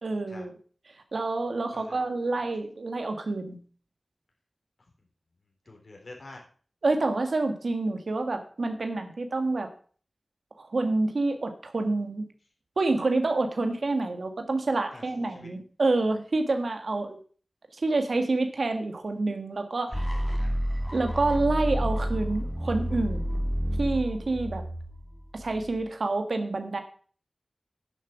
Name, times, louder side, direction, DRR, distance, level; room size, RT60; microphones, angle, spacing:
voice 1, 0.0-0.5 1.1-3.6 6.8-9.7 10.6-12.3 12.8-17.2 17.8-20.1 20.9-23.4 23.8-24.7 25.3-26.8, right 2 dB, 80° right, 7 dB, 1.6 m, -28 dB
voice 2, 1.7-2.0 2.4-2.5 5.7-6.4 14.9-15.5 20.1-20.6, left 2 dB, 70° left, 1 dB, 3.8 m, -48 dB
sound 1, 19.9-25.9, equal, 10° left, 2.3 m, -30 dB
10.0 x 7.5 x 7.0 m, 0.43 s
wide cardioid pair, 75°, 0 cm